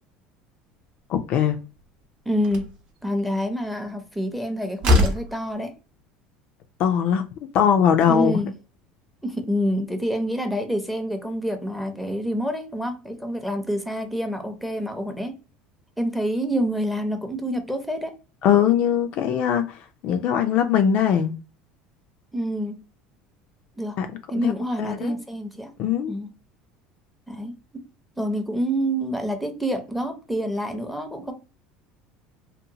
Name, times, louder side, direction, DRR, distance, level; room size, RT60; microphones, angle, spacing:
voice 1, 1.1-1.6 6.8-7.3 7.5-8.4 18.4-19.8 20.0-21.3 24.0-24.1 24.4-24.5 24.8-25.2 25.8-26.1, left 8 dB, 55° left, 0.4 m, -20 dB
Slam, 1.8-1.9 2.4-2.8 4.3-4.4 4.8-5.4, left 2 dB, 45° right, 0.8 m, -20 dB
voice 2, 2.3-2.7 3.0-5.7 8.1-8.5 9.2-15.4 16.0-18.1 22.3-22.8 23.8-24.0 24.3-25.7 26.1-26.3 27.3-27.8 28.2-31.3, equal, ahead, 0.6 m, -27 dB
2.8 x 2.1 x 2.7 m
supercardioid pair, 120°, 3 cm